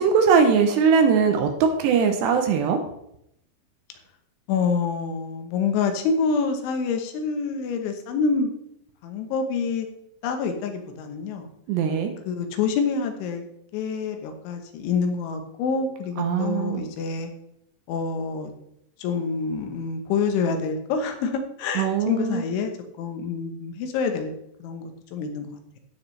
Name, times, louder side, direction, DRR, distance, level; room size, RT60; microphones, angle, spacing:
voice 1, 0.0-1.5 1.8-2.8 11.7-12.1 16.2-16.8 21.8-22.4, right 6 dB, 75° right, 5 dB, 2.8 m, -20 dB
voice 2, 4.5-8.5 9.0-9.9 10.2-11.5 12.3-13.4 13.7-17.3 17.9-18.5 19.0-22.7 23.0-24.3 24.6-25.8, left 5 dB, 80° left, 5 dB, 3.5 m, -27 dB
16.5 x 6.4 x 3.3 m, 0.76 s
omnidirectional pair, 5.4 m